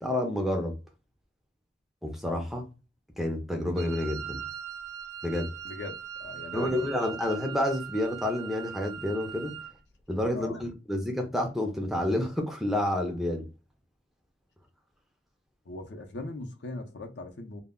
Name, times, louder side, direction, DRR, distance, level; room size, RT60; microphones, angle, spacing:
voice 1, 0.0-0.7 2.0-2.7 3.2-4.4 5.2-5.5 6.5-9.6 10.1-13.5, left 1 dB, ahead, 0.4 m, -29 dB
Wind instrument woodwind instrument, 3.8-9.8, right 8 dB, 85° right, 0.5 m, -41 dB
voice 2, 5.6-6.9 10.3-10.7 15.7-17.6, left 2 dB, 65° left, 0.6 m, -40 dB
2.2 x 2.1 x 3.5 m
head